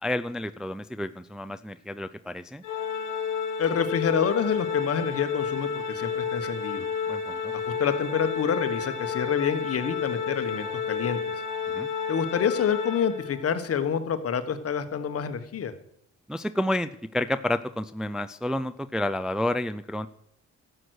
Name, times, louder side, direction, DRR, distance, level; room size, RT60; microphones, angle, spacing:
voice 1, 0.0-2.6 7.1-7.5 11.7-11.9 16.3-20.1, left 1 dB, ahead, 10 dB, 0.4 m, -30 dB
Organ, 2.6-13.5, left 6 dB, 80° left, 1.2 m, -31 dB
voice 2, 3.6-6.9 7.8-11.3 12.1-15.7, left 7 dB, 50° left, 10 dB, 1.3 m, -27 dB
12.5 x 7.9 x 6.4 m, 0.78 s
cardioid pair, 90°, 30 cm